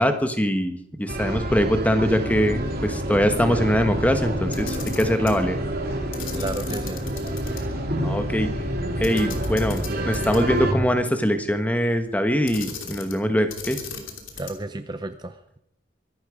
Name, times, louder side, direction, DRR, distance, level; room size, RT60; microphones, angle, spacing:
voice 1, 0.0-5.6 8.0-8.5 9.0-13.8, equal, 10° left, 8 dB, 1.3 m, -22 dB
sound 1, 1.1-10.7, right 1 dB, 50° right, 2.8 m, -28 dB
Camera, 4.4-5.4 6.1-7.6 7.9-8.0 9.0-10.6 12.5-13.2 13.5-14.7, left 6 dB, 90° left, 2.9 m, -37 dB
voice 2, 6.3-7.0 14.4-15.6, right 2 dB, 20° right, 9 dB, 0.6 m, -32 dB
23.5 x 12.0 x 5.0 m, 0.73 s
head